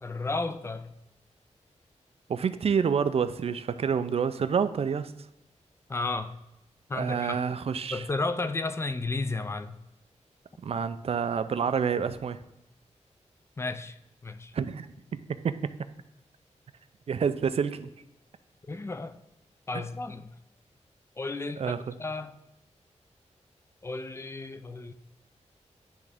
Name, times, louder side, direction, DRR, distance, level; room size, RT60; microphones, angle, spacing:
voice 1, 0.0-0.9 5.9-6.4 6.9-7.4 7.9-9.8 13.6-14.0 14.2-14.5 18.7-19.2 19.7-20.3 21.2-22.4 23.8-24.9, left 3 dB, 20° left, 11 dB, 0.4 m, -33 dB
voice 2, 2.3-5.1 6.9-8.1 10.6-12.4 14.5-14.9 15.1-15.7 17.1-17.9 21.6-21.8, right 6 dB, 55° right, 12 dB, 0.4 m, -28 dB
9.8 x 3.6 x 3.4 m, 0.90 s
wide cardioid pair, 160°, 12 cm